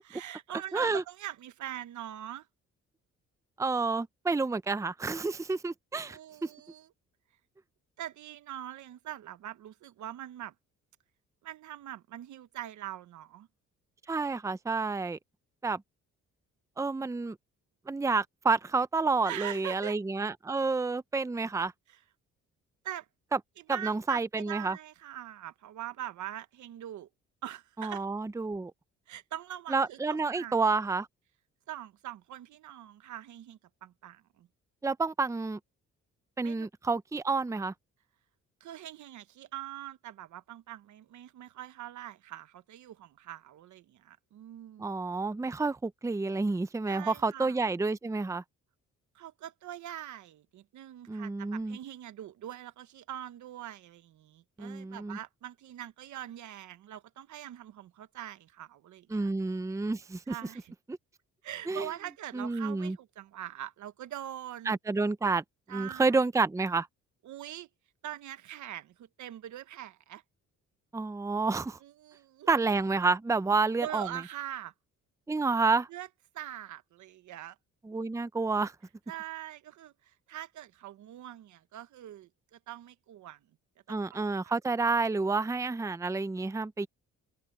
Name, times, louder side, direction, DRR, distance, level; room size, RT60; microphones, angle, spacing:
voice 1, 0.0-2.5 6.1-6.9 8.0-10.5 11.4-13.5 19.2-20.0 21.9-22.0 22.8-23.1 23.6-27.1 27.4-28.0 29.1-30.5 31.7-34.5 36.4-36.7 38.6-45.0 46.9-47.6 49.1-59.3 60.3-60.7 61.4-64.8 65.7-66.2 67.2-67.7 68.0-70.2 71.8-72.5 73.8-74.7 75.9-76.1 76.3-77.6 77.9-78.0 79.1-83.4 83.9-84.5, right 12 dB, 75° right, 1.2 m, -43 dB
voice 2, 0.7-1.0 3.6-6.5 14.1-15.2 15.6-15.8 16.8-17.4 17.9-21.7 23.7-24.8 27.8-28.7 29.7-31.1 34.8-35.6 36.4-37.7 44.8-48.4 51.1-51.8 54.6-55.2 59.1-60.3 61.7-61.9 62.3-63.0 64.7-65.4 65.7-66.9 70.9-71.8 72.5-74.1 75.3-75.9 77.8-78.7 83.9-86.9, right 3 dB, 10° right, 0.6 m, -29 dB
cardioid pair, 90°, 30 cm